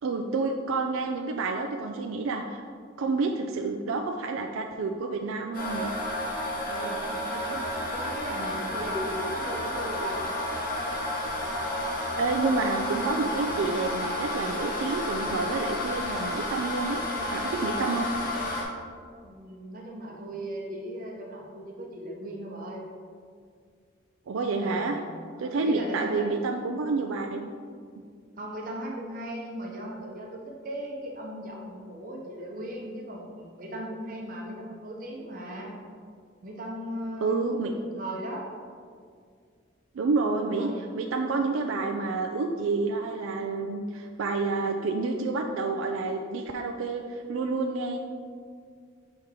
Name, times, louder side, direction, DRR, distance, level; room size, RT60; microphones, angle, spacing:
voice 1, 0.0-2.6 3.0-5.9 11.9-17.0 17.3-18.1 24.3-25.0 25.4-27.5 28.0-28.1 37.2-37.7 39.9-48.0, right 3 dB, 90° right, 3 dB, 0.4 m, -29 dB
sound 1, 5.5-18.6, left 1 dB, 45° left, 1.1 m, -31 dB
voice 2, 6.7-7.1 7.3-7.6 7.9-10.3 19.2-22.8 24.6-26.3 28.4-35.7 36.4-38.4 40.4-40.9, right 1 dB, 45° right, -1 dB, 0.8 m, -38 dB
6.4 x 4.4 x 3.6 m, 2.1 s
head